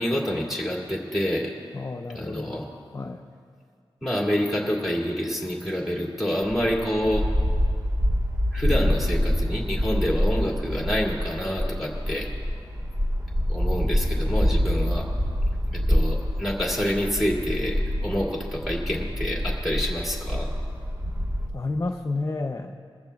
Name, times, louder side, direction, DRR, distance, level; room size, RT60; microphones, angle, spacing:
voice 1, 0.0-1.5 2.1-2.7 4.0-7.3 8.5-12.3 13.5-15.1 15.7-20.5, equal, ahead, -3 dB, 2.3 m, -27 dB
voice 2, 1.7-2.5 2.9-3.2 21.5-22.8, left 3 dB, 30° left, 2 dB, 0.6 m, -30 dB
sound 1, 6.5-21.5, equal, 25° right, 1.2 m, -26 dB
21.5 x 14.5 x 2.3 m, 2.1 s
wide cardioid pair, 125°, 10 cm